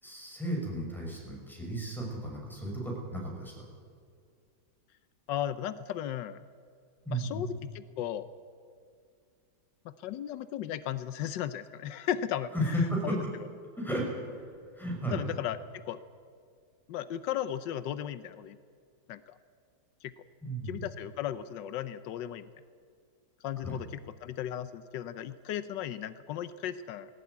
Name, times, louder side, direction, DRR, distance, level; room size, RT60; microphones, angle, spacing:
voice 1, 0.0-3.6 7.0-7.4 12.5-13.2 13.8-14.1 14.7-15.2 20.4-20.8 23.6-23.8, equal, ahead, -2 dB, 5.9 m, -33 dB
voice 2, 5.3-6.4 7.1-8.3 9.8-13.2 15.1-16.0 16.9-18.6 19.1-19.3 20.0-20.1 20.7-22.5 23.4-27.1, left 11 dB, 85° left, 14 dB, 1.4 m, -36 dB
19.5 x 17.5 x 9.5 m, 2.2 s
omnidirectional pair, 1.9 m